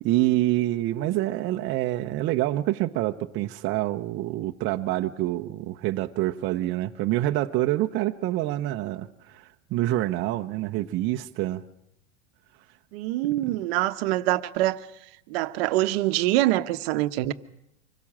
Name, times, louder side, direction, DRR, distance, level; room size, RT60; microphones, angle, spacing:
voice 1, 0.0-11.6, right 15 dB, 35° right, 0.8 m, -26 dB
voice 2, 12.9-14.8 15.3-17.3, right 16 dB, 55° right, 1.0 m, -24 dB
25.0 x 17.0 x 7.4 m
supercardioid pair, 145°, 36 cm